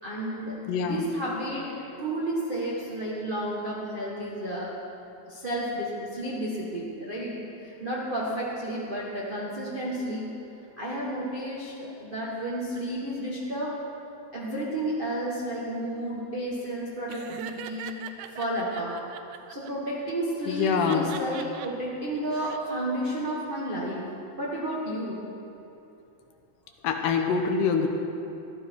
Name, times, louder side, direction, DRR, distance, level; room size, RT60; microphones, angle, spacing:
voice 1, 0.0-4.7 5.3-7.3 7.6-10.3 10.8-13.7 14.3-18.0 18.3-19.0 19.5-24.1 24.4-25.2, right 1 dB, 30° right, -6 dB, 1.0 m, -32 dB
voice 2, 0.7-1.1 20.5-21.2 26.8-27.9, left 5 dB, 85° left, 4 dB, 2.5 m, -25 dB
Laughter, 17.1-19.7 20.5-21.7 22.2-22.6, right 10 dB, 80° right, 2.0 m, -41 dB
15.0 x 12.0 x 4.6 m, 2.7 s
omnidirectional pair, 3.6 m